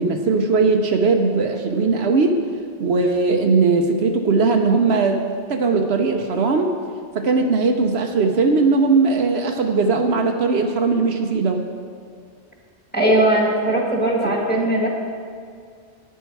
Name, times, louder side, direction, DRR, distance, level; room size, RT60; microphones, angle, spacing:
voice 1, 0.0-2.4 2.8-6.7 7.1-11.6, right 4 dB, 70° right, 4 dB, 1.0 m, -19 dB
voice 2, 12.9-14.9, right 1 dB, 10° left, -1 dB, 1.5 m, -19 dB
11.0 x 9.3 x 4.6 m, 2.2 s
omnidirectional pair, 1.2 m